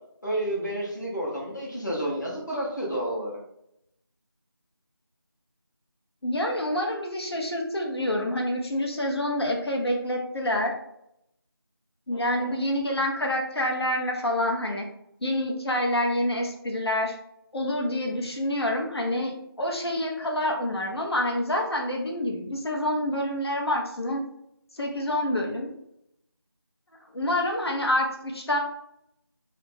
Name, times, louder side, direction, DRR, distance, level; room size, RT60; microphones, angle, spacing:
voice 1, 0.2-3.4 12.1-12.6, right 1 dB, 50° left, -4 dB, 0.7 m, -30 dB
voice 2, 6.2-10.7 12.1-14.9 15.2-17.2 17.5-24.2 24.7-25.7 27.1-28.6, left 1 dB, 85° left, 0 dB, 0.7 m, -27 dB
2.4 x 2.1 x 3.2 m, 0.77 s
figure-of-eight pair, 180°, 13 cm